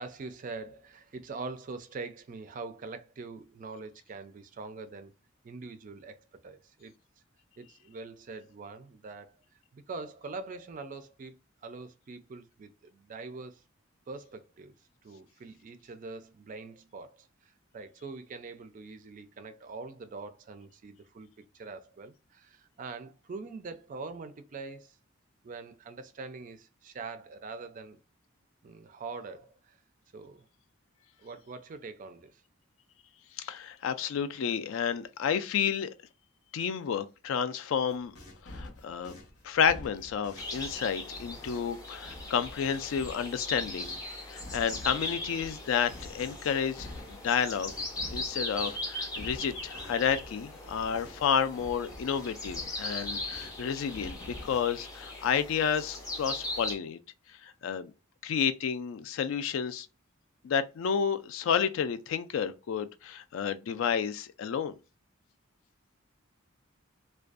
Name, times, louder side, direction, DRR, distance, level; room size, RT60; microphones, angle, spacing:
voice 1, 0.0-5.1 5.4-6.2 6.4-6.9 7.6-9.4 9.7-11.4 11.6-13.6 14.1-14.8 15.0-21.3 21.5-25.0 25.4-28.0 28.6-29.8 30.1-30.5 31.2-32.4, right 4 dB, 40° right, 0.3 m, -43 dB
voice 2, 33.4-35.9 36.5-38.1 38.5-39.2 39.4-43.9 44.3-47.7 48.1-57.0 57.4-57.9 58.2-59.9 60.4-64.7, left 7 dB, 65° left, 0.3 m, -30 dB
sound 1, 37.9-44.1 44.4-51.3 51.5-53.6 53.9-54.6, left 1 dB, 90° left, 0.9 m, -48 dB
sound 2, 40.4-56.8, left 2 dB, 15° left, 0.5 m, -39 dB
2.5 x 2.2 x 2.3 m
head